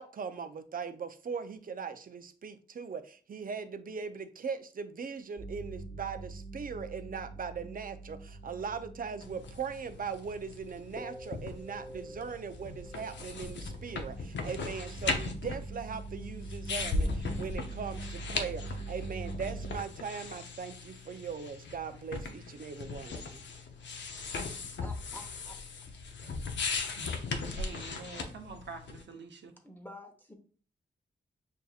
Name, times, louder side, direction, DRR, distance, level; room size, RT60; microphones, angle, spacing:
voice 1, 0.0-23.4, right 6 dB, 50° right, 0.5 m, -40 dB
sound 1, 5.4-10.6 11.0-19.8, right 2 dB, 10° right, 1.1 m, -44 dB
sound 2, 9.2-29.0, left 4 dB, 75° left, 0.6 m, -38 dB
voice 2, 24.8-25.6 29.6-30.4, left 1 dB, 10° left, 0.9 m, -48 dB
voice 3, 27.5-29.5, right 4 dB, 70° right, 0.8 m, -46 dB
6.4 x 2.7 x 2.4 m
cardioid pair, 70°, 19 cm